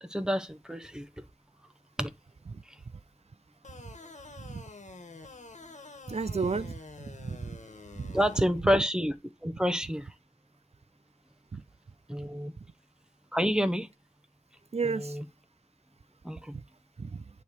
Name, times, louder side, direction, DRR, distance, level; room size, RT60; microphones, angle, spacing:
voice 1, 0.0-1.2 2.0-2.1 2.7-2.8 8.1-9.1 9.4-10.1 12.1-12.5 13.3-13.9 14.8-15.2 16.2-16.6, equal, 5° right, 1.1 m, -29 dB
sound 1, 3.6-8.5, left 3 dB, 65° left, 1.5 m, -48 dB
voice 2, 6.1-7.6 8.0-8.1 11.5-11.6 14.7-15.2 17.0-17.2, right 4 dB, 50° right, 0.5 m, -33 dB
9.1 x 3.4 x 4.9 m
cardioid pair, 45°, 13 cm